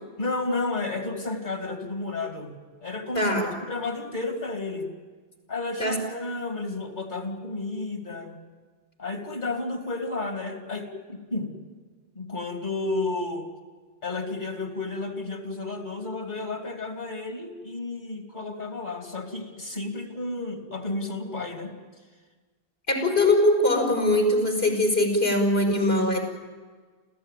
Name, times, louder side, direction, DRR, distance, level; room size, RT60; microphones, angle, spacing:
voice 1, 0.2-3.3 3.7-4.9 5.5-8.4 9.0-11.6 12.1-13.5 14.0-21.8, left 3 dB, 50° left, 3 dB, 3.0 m, -32 dB
voice 2, 3.1-3.5 5.8-6.0 22.9-26.2, left 1 dB, 70° left, 2 dB, 5.2 m, -22 dB
28.5 x 15.5 x 9.3 m, 1.5 s
omnidirectional pair, 1.1 m